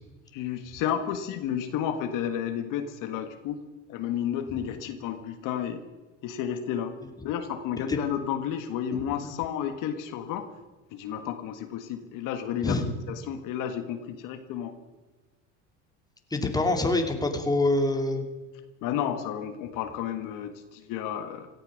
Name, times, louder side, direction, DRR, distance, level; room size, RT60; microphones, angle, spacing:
voice 1, 0.3-3.6 3.9-5.8 6.2-6.9 7.2-10.5 10.9-12.8 13.1-14.7 18.8-21.5, left 9 dB, 60° left, 7 dB, 1.7 m, -31 dB
voice 2, 8.9-9.3 12.6-12.9 16.3-18.2, left 2 dB, 10° left, 4 dB, 2.7 m, -26 dB
17.0 x 13.0 x 6.5 m, 1.2 s
supercardioid pair, 95°, 35 cm